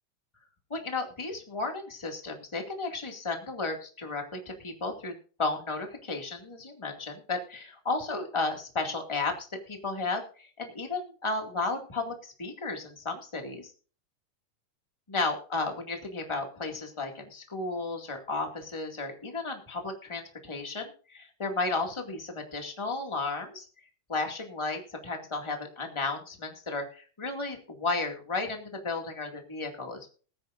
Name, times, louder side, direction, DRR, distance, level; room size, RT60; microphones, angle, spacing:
voice 1, 0.7-5.1 5.4-13.7 15.1-23.6 24.1-30.1, left 3 dB, 10° left, 3 dB, 1.7 m, -33 dB
21.0 x 9.0 x 2.6 m, 0.39 s
omnidirectional pair, 3.6 m